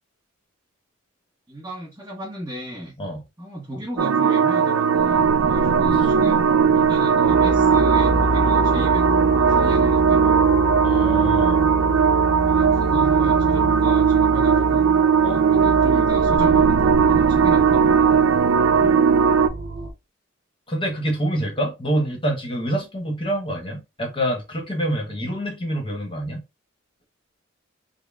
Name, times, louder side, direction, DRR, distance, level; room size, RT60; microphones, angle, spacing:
voice 1, 1.5-3.0 3.4-6.4 6.7-10.4 12.4-14.9 15.3-18.2, right 1 dB, 15° right, 1.0 m, -34 dB
sound 1, 4.0-19.5, right 6 dB, 85° right, 0.4 m, -18 dB
sound 2, 7.2-19.9, right 1 dB, 55° right, 0.9 m, -27 dB
voice 2, 10.8-11.7 13.5-13.6 15.2-15.5 18.8-19.0 20.7-26.4, right 1 dB, 25° left, 1.1 m, -26 dB
3.7 x 2.1 x 3.4 m
head